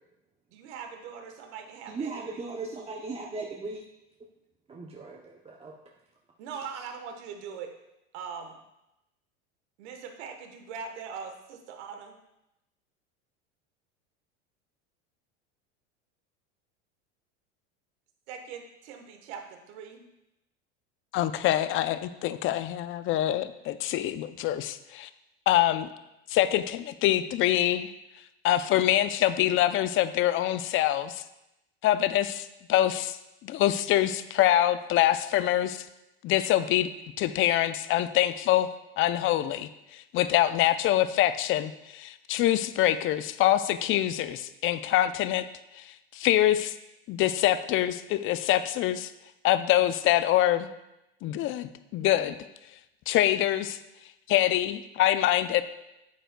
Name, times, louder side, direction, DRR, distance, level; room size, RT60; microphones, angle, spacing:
voice 1, 0.5-2.5 6.4-7.7 8.1-8.6 9.8-12.1 18.3-20.0, right 6 dB, 70° right, 5 dB, 1.2 m, -41 dB
voice 2, 1.9-3.8 4.7-5.7 6.7-6.8, right 3 dB, 15° right, 0 dB, 0.6 m, -37 dB
voice 3, 21.1-25.1 25.5-25.9 26.3-27.9 28.4-31.2 31.8-33.2 33.4-35.8 36.2-36.9 37.2-38.7 39.0-45.5 45.8-46.7 47.1-49.1 49.4-50.7 51.2-52.4 53.1-53.8 54.3-55.6, left 13 dB, 40° left, 13 dB, 0.5 m, -25 dB
9.1 x 7.7 x 2.2 m, 0.91 s
hypercardioid pair, 105°, 34 cm